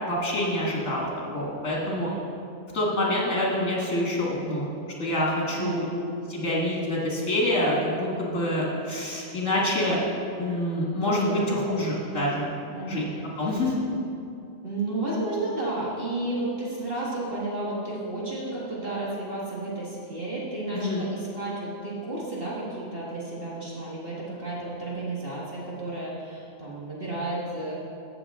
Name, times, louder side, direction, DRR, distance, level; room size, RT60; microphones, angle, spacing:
voice 1, 0.1-2.1 2.7-4.7 5.0-5.9 6.3-10.0 10.4-12.5 12.9-13.1 13.4-13.7 20.7-21.0, left 1 dB, 70° left, -4 dB, 2.4 m, -26 dB
voice 2, 1.8-2.2 5.5-6.0 11.0-11.7 12.7-13.1 14.6-27.8, right 2 dB, 45° right, -6 dB, 1.9 m, -32 dB
14.5 x 6.9 x 3.7 m, 2.6 s
omnidirectional pair, 1.4 m